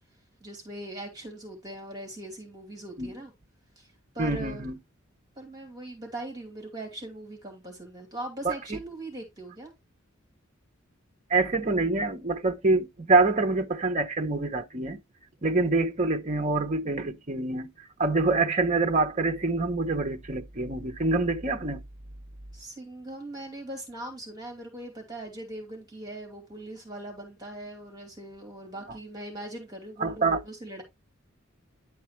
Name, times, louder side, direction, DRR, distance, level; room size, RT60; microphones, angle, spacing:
voice 1, 0.4-3.3 3.8-3.9 4.1-4.7 5.4-9.7 22.5-30.8, right 1 dB, 20° right, 2.6 m, -40 dB
voice 2, 4.2-4.8 8.4-8.8 11.3-15.0 15.4-17.7 18.0-21.8 30.0-30.4, right 3 dB, 35° right, 0.8 m, -26 dB
10.5 x 4.8 x 3.2 m
head